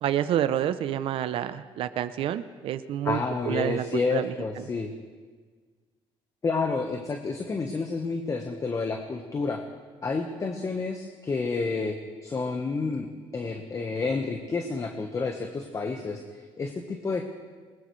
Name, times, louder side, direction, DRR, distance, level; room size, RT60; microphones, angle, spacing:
voice 1, 0.0-3.2 3.5-4.6, right 11 dB, 65° right, 12 dB, 0.6 m, -28 dB
voice 2, 3.0-4.9 6.4-9.6 10.0-12.0 12.2-13.1 13.3-17.2, left 4 dB, 30° left, 4 dB, 1.2 m, -29 dB
21.0 x 20.0 x 3.2 m, 1.5 s
cardioid pair, 110°, 10 cm